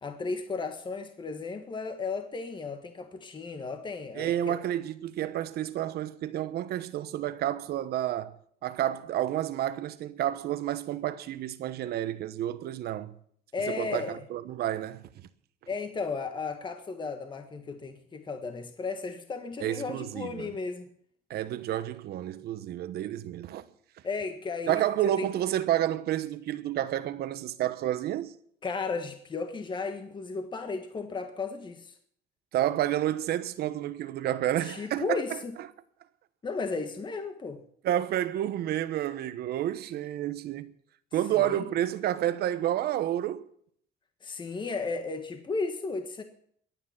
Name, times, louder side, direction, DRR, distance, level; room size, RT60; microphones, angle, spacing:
voice 1, 0.0-4.6 13.5-14.2 15.7-20.9 24.0-24.8 25.2-25.3 28.6-31.9 34.6-35.5 36.4-37.6 41.3-41.6 44.2-46.2, left 4 dB, 30° left, 1.6 m, -34 dB
voice 2, 4.2-8.3 8.6-13.2 13.7-15.1 19.6-20.5 21.3-23.7 24.7-28.4 32.5-35.7 37.8-40.7 41.1-43.5, right 12 dB, 70° right, 1.1 m, -30 dB
22.5 x 9.3 x 6.0 m
cardioid pair, 110°, 17 cm